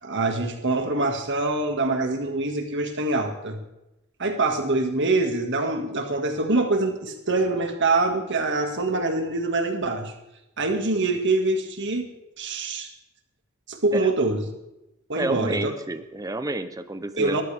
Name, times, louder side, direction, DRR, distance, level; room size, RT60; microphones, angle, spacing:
voice 1, 0.0-3.6 4.2-10.1 10.6-12.1 12.4-12.9 13.7-14.4 15.1-15.7 17.2-17.4, right 2 dB, 55° right, 5 dB, 2.1 m, -24 dB
voice 2, 15.2-17.4, right 2 dB, 15° right, 10 dB, 0.8 m, -29 dB
20.5 x 14.5 x 3.5 m, 0.92 s
head